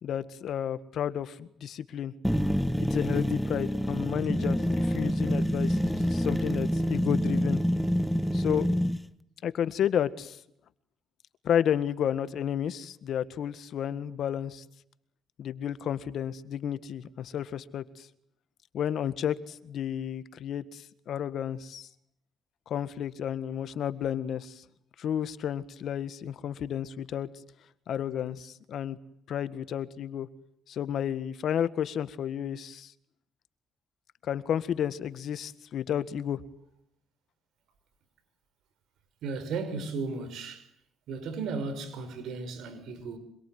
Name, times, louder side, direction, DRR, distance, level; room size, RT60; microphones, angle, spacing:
voice 1, 0.0-2.1 2.9-7.6 8.3-8.7 9.4-10.4 11.4-14.6 15.4-18.1 18.7-21.9 22.7-24.6 25.0-27.3 27.9-29.0 29.3-30.3 30.7-32.9 34.2-36.4, left 9 dB, 70° left, 1.7 m, -31 dB
sound 1, 2.2-9.0, equal, ahead, 1.5 m, -27 dB
voice 2, 39.2-40.7 41.1-43.2, right 4 dB, 80° right, 5.6 m, -35 dB
26.0 x 23.5 x 9.4 m
cardioid pair, 90°, 0 cm